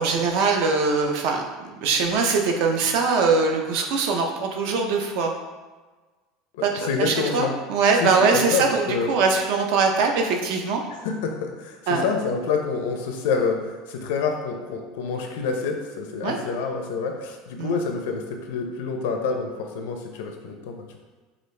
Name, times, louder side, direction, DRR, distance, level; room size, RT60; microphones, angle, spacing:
voice 1, 0.0-1.4 1.7-5.3 6.6-10.8 11.9-12.0 16.2-16.4 17.6-17.7, right 4 dB, 55° right, 3 dB, 0.6 m, -22 dB
voice 2, 6.5-7.5 8.0-9.1 11.0-21.0, left 5 dB, 85° left, 3 dB, 0.6 m, -27 dB
5.0 x 2.4 x 3.3 m, 1.3 s
cardioid pair, 170°, 0 cm